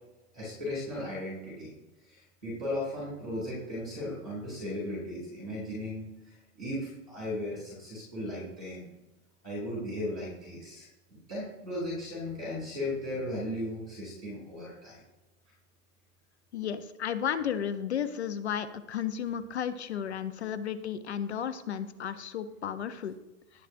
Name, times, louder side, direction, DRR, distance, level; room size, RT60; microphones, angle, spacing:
voice 1, 0.3-1.7 2.1-8.9 9.4-15.0, left 1 dB, 5° right, -16 dB, 0.4 m, -36 dB
voice 2, 16.5-23.2, left 8 dB, 45° left, 12 dB, 0.6 m, -33 dB
18.0 x 7.4 x 2.5 m, 1.0 s
hypercardioid pair, 175°, 46 cm